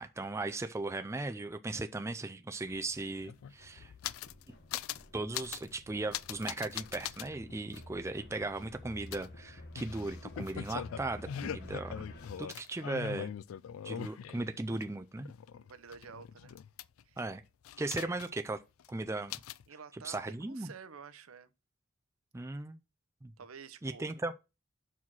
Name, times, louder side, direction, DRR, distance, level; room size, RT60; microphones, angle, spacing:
voice 1, 0.0-3.9 5.1-12.1 12.4-13.3 13.8-15.3 17.2-17.4 17.8-18.6 18.9-19.4 20.0-20.7 22.3-22.8 23.2-23.3 23.8-24.3, right 2 dB, 15° right, 0.4 m, -37 dB
sound 1, 2.5-12.4, left 1 dB, 50° left, 1.1 m, -51 dB
sound 2, 2.7-2.8 3.0-4.4 4.7-5.0 5.3-5.7 6.1-7.3 7.7-7.8 9.1-14.8 15.2-17.2 17.6-18.5 18.8-18.9 19.3-19.6, left 9 dB, 75° left, 0.3 m, -41 dB
voice 2, 7.8-8.1 15.5-16.6 17.0-17.2 17.9-18.2 19.7-21.5 23.4-24.1, right 6 dB, 85° right, 0.8 m, -51 dB
5.6 x 4.8 x 6.1 m
head